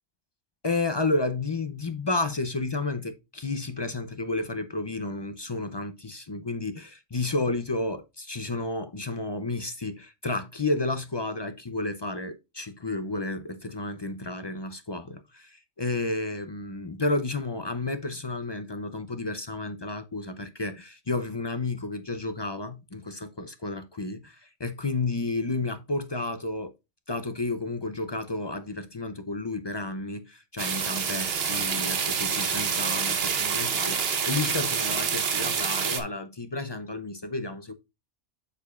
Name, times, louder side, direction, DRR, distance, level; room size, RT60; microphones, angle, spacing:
voice 1, 0.6-26.7 27.1-37.7, left 2 dB, 35° left, 0.4 m, -31 dB
sound 1, 30.6-36.0, right 6 dB, 60° right, 1.1 m, -27 dB
7.4 x 6.5 x 2.4 m
omnidirectional pair, 1.2 m